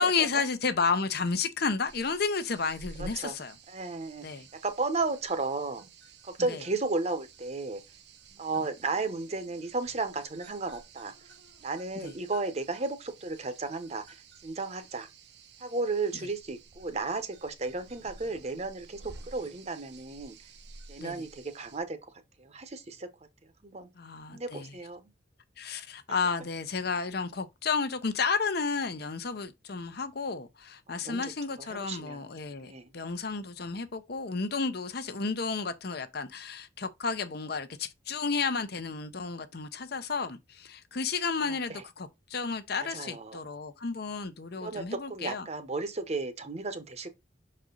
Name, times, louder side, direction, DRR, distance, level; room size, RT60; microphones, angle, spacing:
voice 1, 0.0-3.5 4.2-4.5 6.5-6.6 12.0-12.1 21.0-21.3 24.0-24.7 25.6-45.5, left 5 dB, 60° left, 0.8 m, -32 dB
sound 1, 1.8-21.8, right 3 dB, 65° right, 0.9 m, -52 dB
voice 2, 3.0-3.3 3.7-4.2 4.6-5.9 6.2-7.8 8.4-11.1 11.6-15.1 15.6-19.0 19.3-20.4 20.9-22.0 22.4-23.1 23.6-23.9 24.3-25.0 30.9-31.3 31.6-32.3 32.6-32.9 41.5-41.8 42.9-43.4 44.6-47.1, right 3 dB, 35° right, 0.9 m, -34 dB
6.1 x 4.3 x 3.9 m
head